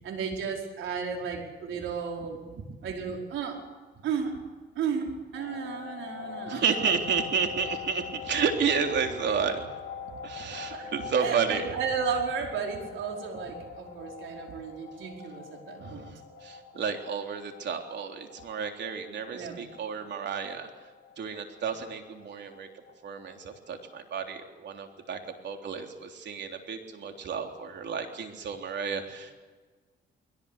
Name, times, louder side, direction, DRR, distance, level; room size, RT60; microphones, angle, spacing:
voice 1, 0.0-2.4 2.8-3.6 4.0-4.4 4.7-6.6 10.7-10.9 11.2-16.0 19.3-19.7, right 6 dB, 80° right, 1 dB, 5.1 m, -33 dB
sound 1, 5.3-23.9, left 6 dB, 55° left, 6.6 m, -44 dB
voice 2, 6.5-9.7 10.2-11.7 15.8-20.9 21.2-22.7 23.0-29.3, right 6 dB, 60° right, 4 dB, 3.5 m, -31 dB
21.5 x 18.5 x 8.4 m, 1.4 s
cardioid pair, 90°, 20 cm